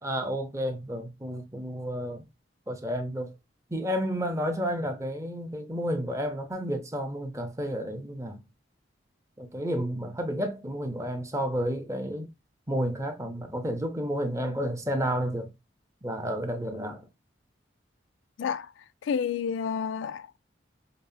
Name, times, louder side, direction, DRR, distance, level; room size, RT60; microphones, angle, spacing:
voice 1, 0.0-2.2 2.7-3.3 3.7-8.4 9.4-12.3 12.7-15.5 16.0-17.0, equal, 15° right, 0.7 m, -31 dB
voice 2, 18.4-18.7 19.0-20.4, left 7 dB, 85° left, 0.3 m, -30 dB
5.2 x 2.0 x 2.6 m
head